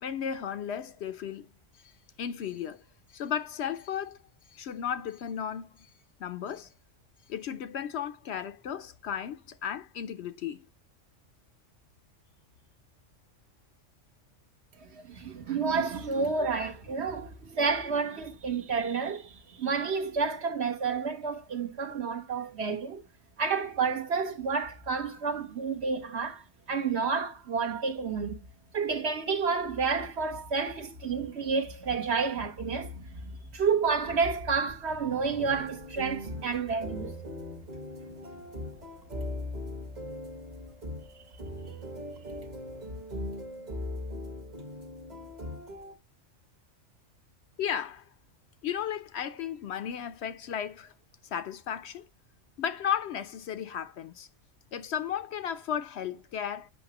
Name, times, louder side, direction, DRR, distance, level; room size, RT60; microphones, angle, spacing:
voice 1, 0.0-1.5 1.8-1.9 2.2-2.8 3.1-4.2 4.5-5.9 6.2-6.7 7.3-10.6 47.6-48.1 48.6-50.9 51.3-52.0 52.6-54.3 54.7-56.7, left 8 dB, 65° left, 0.8 m, -34 dB
voice 2, 14.8-23.0 23.4-28.4 28.7-37.1, right 5 dB, 60° right, 1.2 m, -30 dB
sound 1, 35.4-45.9, left 1 dB, 35° right, 1.3 m, -40 dB
7.8 x 5.7 x 2.9 m
omnidirectional pair, 1.3 m